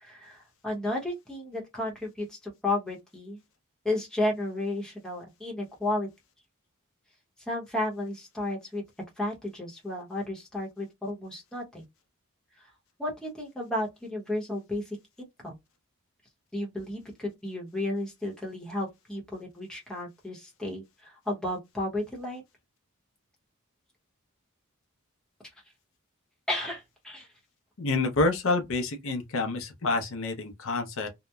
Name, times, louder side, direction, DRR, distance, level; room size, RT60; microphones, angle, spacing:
voice 1, 0.0-3.4 3.8-6.1 7.5-8.8 9.2-11.8 13.0-15.5 16.5-22.4 26.5-27.3 29.0-29.1, left 1 dB, 5° left, 0.8 m, -33 dB
voice 2, 27.8-31.1, left 3 dB, 60° left, 0.6 m, -28 dB
2.8 x 2.0 x 2.2 m
head